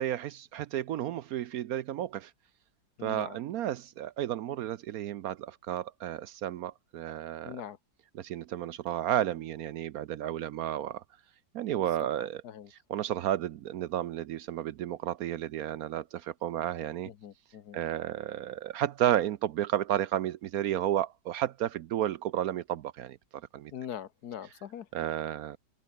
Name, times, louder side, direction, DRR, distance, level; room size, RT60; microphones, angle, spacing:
voice 1, 0.0-2.3 3.0-7.6 8.2-11.0 11.5-12.4 12.9-17.1 17.7-23.2 23.5-23.7 24.9-25.6, right 11 dB, 70° right, 0.9 m, -32 dB
voice 2, 3.0-3.4 7.4-7.8 12.0-12.7 17.0-17.8 23.7-24.9, left 9 dB, 60° left, 1.4 m, -42 dB
omnidirectional pair, 2.0 m